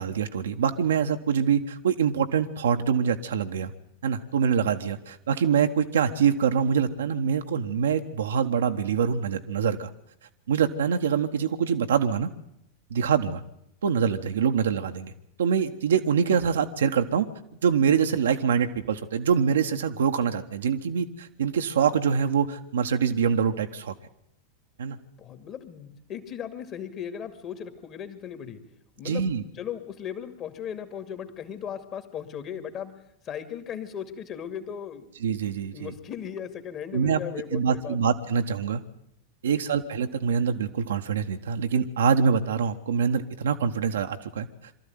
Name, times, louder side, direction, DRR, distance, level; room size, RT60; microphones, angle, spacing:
voice 1, 0.0-3.7 4.0-9.9 10.5-12.3 12.9-13.4 13.8-15.1 15.4-17.3 17.6-23.9 24.8-25.0 29.0-29.4 35.2-35.9 36.9-37.2 37.5-38.8 39.4-44.5, right 7 dB, 65° right, 6 dB, 1.3 m, -25 dB
voice 2, 25.2-28.7 29.0-35.1 35.7-38.1 39.5-39.6, left 8 dB, 30° left, 8 dB, 2.3 m, -37 dB
24.0 x 13.5 x 9.4 m, 0.77 s
figure-of-eight pair, 90°, 0 cm